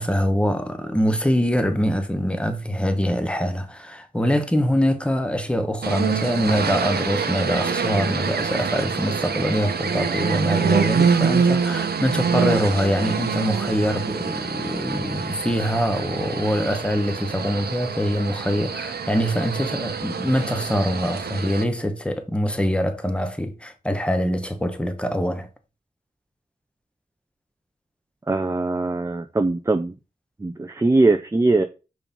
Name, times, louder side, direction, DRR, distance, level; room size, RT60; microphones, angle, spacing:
voice 1, 0.0-25.5, equal, 5° left, 1.2 m, -24 dB
sound 1, 5.8-21.6, right 6 dB, 85° right, 0.9 m, -25 dB
voice 2, 28.3-29.9 30.4-31.6, right 2 dB, 20° right, 0.6 m, -21 dB
5.7 x 4.8 x 5.4 m
wide cardioid pair, 90°, 16 cm